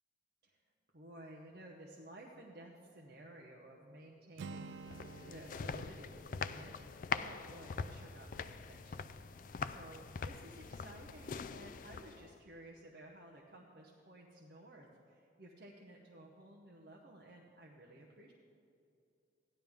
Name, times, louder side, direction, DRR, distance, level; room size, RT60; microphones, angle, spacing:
voice 1, 0.9-6.8 7.2-18.3, right 1 dB, 55° right, -1 dB, 0.9 m, -55 dB
Acoustic guitar, 4.4-8.3, right 4 dB, 75° right, 0.3 m, -52 dB
sound 1, 4.6-12.4, left 5 dB, 45° left, 0.3 m, -43 dB
15.5 x 10.5 x 3.6 m, 2.5 s
head